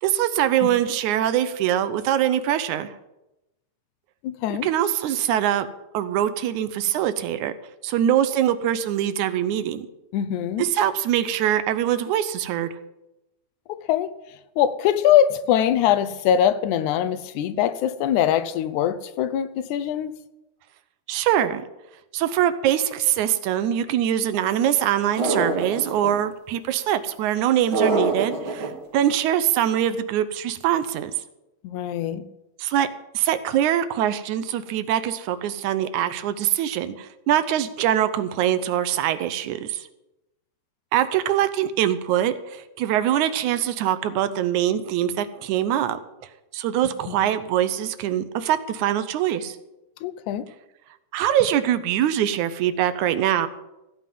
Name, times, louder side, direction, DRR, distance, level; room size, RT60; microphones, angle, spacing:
voice 1, 0.0-2.9 4.5-5.7 5.9-7.5 7.8-9.9 10.6-12.7 21.1-21.6 22.1-31.1 32.6-32.9 33.1-39.9 40.9-46.0 46.5-49.6 51.1-53.5, right 11 dB, 85° right, 2.2 m, -23 dB
voice 2, 4.2-4.7 10.1-10.7 13.7-14.1 14.6-20.1 31.6-32.3 47.1-47.3 50.0-50.4, left 10 dB, 90° left, 2.2 m, -22 dB
sound 1, 25.2-26.1 27.7-28.7, right 3 dB, 45° right, 3.0 m, -23 dB
16.0 x 5.6 x 9.2 m
omnidirectional pair, 3.3 m